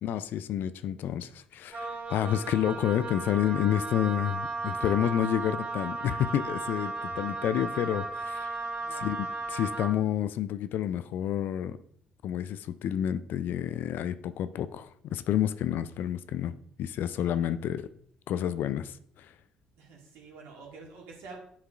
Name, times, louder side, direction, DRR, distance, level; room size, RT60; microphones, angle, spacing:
voice 1, 0.0-8.5 8.9-11.8 12.2-17.9 18.3-19.3, left 10 dB, 55° left, 0.4 m, -29 dB
Wind instrument woodwind instrument, 1.7-10.0, right 3 dB, 35° right, 1.1 m, -35 dB
voice 2, 8.7-9.2 17.2-17.6 19.8-21.4, right 4 dB, 65° right, 1.8 m, -48 dB
10.5 x 4.7 x 2.4 m
figure-of-eight pair, 50°, 4 cm